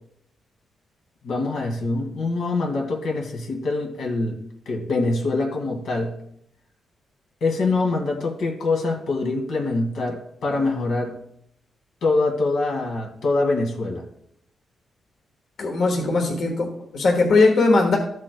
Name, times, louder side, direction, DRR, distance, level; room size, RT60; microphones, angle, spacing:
voice 1, 1.2-4.4 4.7-6.2 7.4-11.2 12.0-14.0, left 3 dB, 85° left, 1 dB, 1.9 m, -24 dB
voice 2, 15.6-18.0, left 3 dB, 60° left, 1 dB, 1.4 m, -19 dB
14.0 x 7.5 x 2.2 m, 0.72 s
wide cardioid pair, 165°, 0 cm